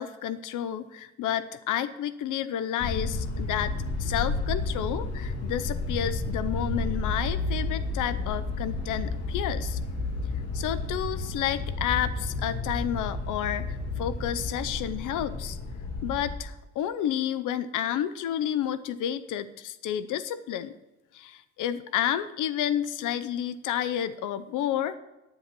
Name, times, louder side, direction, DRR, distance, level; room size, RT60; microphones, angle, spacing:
voice 1, 0.0-3.7 4.0-9.8 10.5-15.6 16.0-20.7 21.1-25.0, left 10 dB, 85° left, 14 dB, 0.7 m, -30 dB
sound 1, 2.8-16.4, left 2 dB, 55° left, 2.8 m, -31 dB
9.8 x 9.7 x 6.0 m, 0.99 s
cardioid pair, 90°, 30 cm